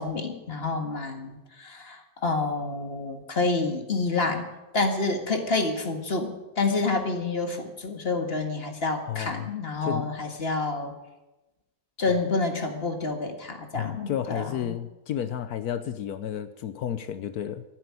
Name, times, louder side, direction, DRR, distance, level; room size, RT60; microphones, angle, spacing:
voice 1, 0.0-4.5 4.7-10.9 12.0-14.8, left 3 dB, 40° left, 5 dB, 1.9 m, -28 dB
voice 2, 9.1-9.5 9.8-10.1 13.7-17.6, left 10 dB, 75° left, 11 dB, 1.2 m, -32 dB
12.5 x 10.5 x 9.7 m, 1.0 s
omnidirectional pair, 1.6 m